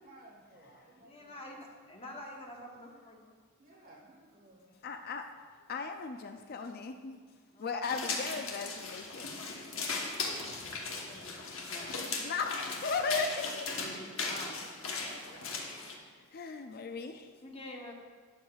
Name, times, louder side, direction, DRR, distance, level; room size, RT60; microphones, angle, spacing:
voice 1, 0.0-1.5 3.6-5.0 7.0-7.2 14.1-14.7 15.0-16.1, right 1 dB, 40° right, -1 dB, 1.4 m, -56 dB
voice 2, 1.0-3.2 7.5-7.9 10.6-12.3 13.9-14.6 17.4-17.9, left 1 dB, 25° left, 0 dB, 1.0 m, -48 dB
voice 3, 4.8-5.3 5.7-7.2 7.6-9.4 12.2-13.7 16.3-17.3, left 4 dB, 45° left, 6 dB, 0.4 m, -36 dB
sound 1, 7.8-16.0, left 4 dB, 70° left, 1.1 m, -38 dB
11.0 x 7.9 x 2.4 m, 1.6 s
head